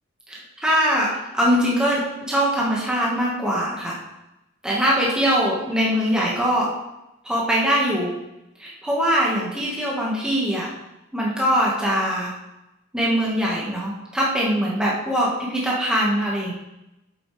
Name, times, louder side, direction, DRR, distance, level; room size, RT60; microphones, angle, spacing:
voice 1, 0.3-1.1 1.3-4.0 4.6-6.7 7.2-8.1 8.6-10.7 11.1-12.3 12.9-16.5, equal, 5° right, -5 dB, 1.8 m, -22 dB
8.5 x 8.2 x 3.4 m, 0.93 s
head